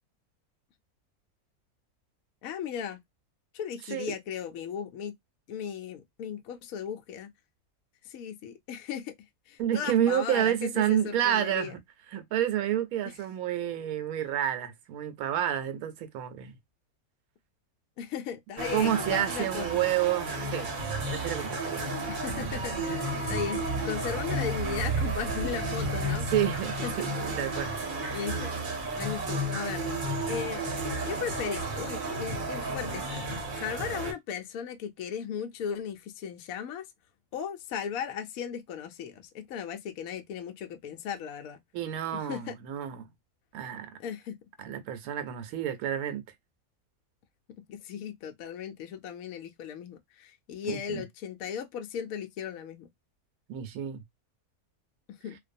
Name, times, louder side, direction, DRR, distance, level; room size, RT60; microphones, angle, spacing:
voice 1, 2.4-3.0 3.5-5.1 5.5-7.3 8.1-9.1 9.5-11.7 13.0-13.2 18.0-19.9 22.1-26.3 26.8-26.9 28.1-28.5 28.9-29.9 30.3-30.6 31.1-33.2 33.5-36.8 37.3-41.6 42.1-42.6 44.0-44.4 47.7-52.9 55.2-55.4, left 8 dB, 75° left, 1.0 m, -36 dB
voice 2, 9.6-11.8 12.1-16.5 18.7-20.7 21.1-21.8 26.3-27.9 41.7-43.0 43.5-43.9 44.6-46.2 50.6-51.0 53.5-54.0, right 11 dB, 80° right, 1.1 m, -29 dB
sound 1, 18.6-34.1, right 2 dB, 45° right, 0.8 m, -32 dB
2.5 x 2.2 x 2.5 m
omnidirectional pair, 1.5 m